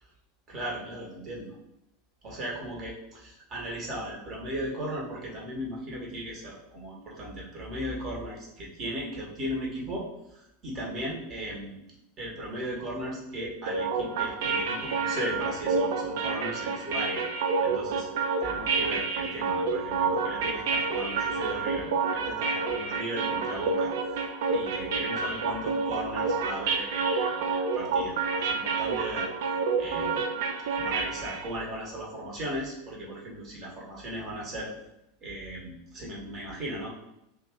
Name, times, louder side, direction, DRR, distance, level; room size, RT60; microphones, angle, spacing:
voice 1, 0.5-1.5 2.2-2.9 3.2-11.8 12.2-17.2 17.6-18.1 18.4-24.2 24.5-29.3 29.8-30.3 30.7-34.7 35.2-36.9, right 1 dB, 35° right, -3 dB, 0.9 m, -37 dB
sound 1, 13.7-31.5, right 4 dB, 60° right, 0.3 m, -29 dB
2.4 x 2.3 x 3.4 m, 0.84 s
figure-of-eight pair, 80°, 0 cm